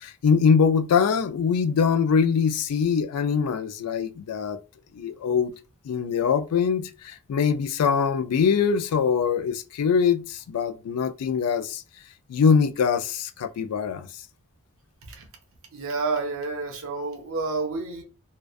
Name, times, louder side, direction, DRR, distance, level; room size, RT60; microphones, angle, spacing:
voice 1, 0.0-4.6 4.9-5.5 5.8-11.8 12.3-14.1, left 6 dB, 85° left, 0.4 m, -23 dB
voice 2, 15.7-18.0, right 3 dB, 65° right, 0.6 m, -29 dB
2.4 x 2.2 x 2.3 m
head